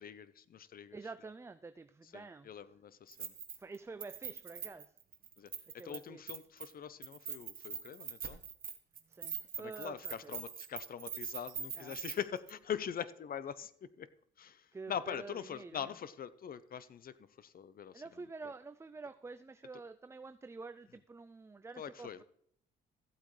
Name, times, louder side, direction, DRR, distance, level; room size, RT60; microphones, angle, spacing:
voice 1, 0.0-1.0 2.1-3.3 5.4-5.5 5.8-8.4 9.6-14.1 14.4-18.0 21.8-22.2, left 8 dB, 45° left, 16 dB, 0.7 m, -43 dB
voice 2, 0.9-2.5 3.6-4.9 5.7-6.4 9.1-10.4 11.8-12.0 14.7-15.9 17.9-22.2, right 4 dB, 15° right, 11 dB, 0.3 m, -48 dB
Keys jangling, 3.1-6.0 6.3-6.7 7.0-12.1 12.5-12.6, right 7 dB, 45° right, 1.2 m, -43 dB
14.5 x 8.2 x 3.2 m, 0.67 s
cardioid pair, 90°, 20 cm